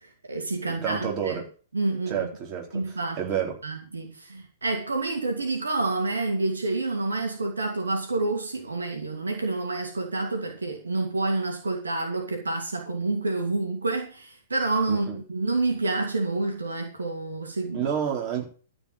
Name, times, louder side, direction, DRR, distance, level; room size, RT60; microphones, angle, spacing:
voice 1, 0.0-1.4 1.7-2.3 2.7-3.2 3.6-17.9, right 2 dB, 80° right, 2.7 m, -28 dB
voice 2, 0.7-1.5 2.1-3.6 14.9-15.2 17.7-18.4, right 8 dB, 35° right, 4.2 m, -30 dB
14.0 x 5.3 x 8.1 m
figure-of-eight pair, 110°, 0 cm